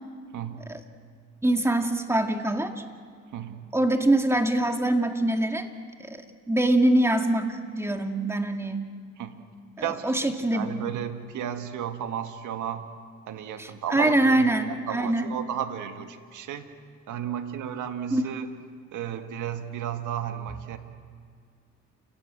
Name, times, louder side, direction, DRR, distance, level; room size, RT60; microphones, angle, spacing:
voice 1, 0.3-0.8 3.3-3.7 9.2-9.4 9.8-12.9 13.3-16.7 17.1-18.5 18.9-20.8, right 9 dB, 80° right, 7 dB, 1.7 m, -33 dB
voice 2, 1.4-2.7 3.7-5.7 6.0-6.2 6.5-8.8 9.8-10.9 13.6-15.3 18.1-18.3, right 1 dB, 10° right, 5 dB, 2.2 m, -24 dB
29.0 x 17.0 x 8.1 m, 2.1 s
cardioid pair, 90°, 30 cm